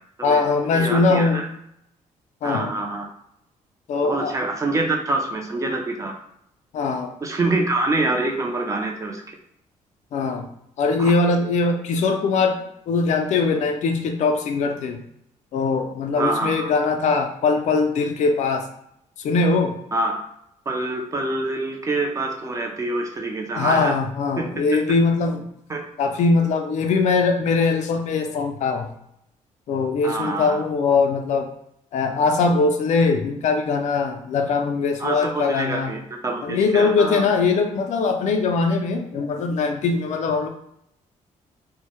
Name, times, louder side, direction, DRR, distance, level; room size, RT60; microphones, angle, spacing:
voice 1, 0.2-1.4 2.4-2.7 3.9-4.3 6.7-7.1 10.1-10.5 10.8-12.6 12.9-15.0 15.5-18.7 19.2-19.7 23.5-25.4 26.0-28.9 29.7-31.5 31.9-35.9 36.4-40.5, left 4 dB, 65° left, 4 dB, 0.4 m, -21 dB
voice 2, 0.7-1.5 2.4-3.1 4.0-6.1 7.2-9.2 11.0-11.1 16.2-16.7 19.9-20.1 20.7-23.9 24.4-24.5 25.7-25.8 30.0-30.6 35.0-37.2, right 2 dB, 25° right, 2 dB, 0.4 m, -25 dB
2.1 x 2.1 x 2.9 m, 0.74 s
cardioid pair, 115°, 13 cm